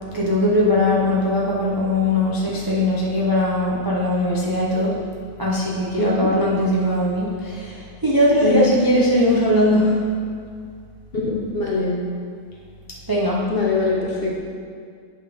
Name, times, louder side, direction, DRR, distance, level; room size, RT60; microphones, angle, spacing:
voice 1, 0.1-5.0 5.4-10.1 13.1-13.5, left 1 dB, 35° right, -4 dB, 0.3 m, -20 dB
voice 2, 6.0-6.3 8.4-8.6 11.1-12.0 13.5-14.4, left 3 dB, 45° left, -3 dB, 0.8 m, -22 dB
8.0 x 4.1 x 5.1 m, 2.1 s
omnidirectional pair, 1.7 m